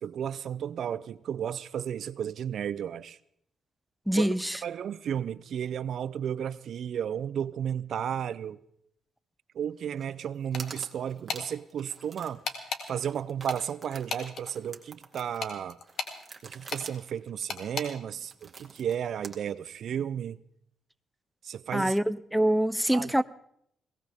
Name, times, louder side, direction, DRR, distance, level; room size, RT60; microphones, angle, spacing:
voice 1, 0.0-3.2 4.1-4.3 4.6-8.6 9.5-12.4 12.9-15.8 16.4-20.4 21.4-22.0 22.9-23.1, right 9 dB, 65° right, 0.5 m, -33 dB
voice 2, 4.1-4.6 21.7-23.2, right 1 dB, ahead, 0.5 m, -25 dB
sound 1, 10.0-10.1 10.3-12.5 12.8-19.4, right 4 dB, 30° right, 2.2 m, -48 dB
sound 2, 10.5-10.9 11.3-11.5 12.4-12.8 13.5-14.5 15.4-16.2 16.7-16.9 17.5-17.9, left 5 dB, 60° left, 2.1 m, -35 dB
21.5 x 17.5 x 3.5 m
cardioid pair, 90°, 0 cm